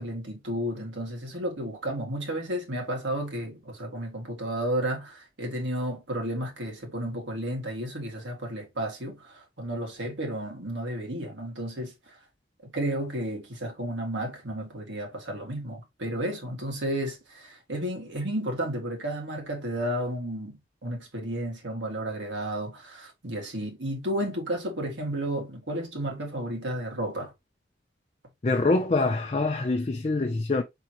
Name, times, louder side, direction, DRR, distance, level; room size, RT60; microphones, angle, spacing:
voice 1, 0.0-12.2 12.6-27.3, right 1 dB, 85° right, 1.9 m, -32 dB
voice 2, 28.4-30.6, left 3 dB, 35° left, 0.4 m, -25 dB
4.4 x 3.7 x 2.9 m
head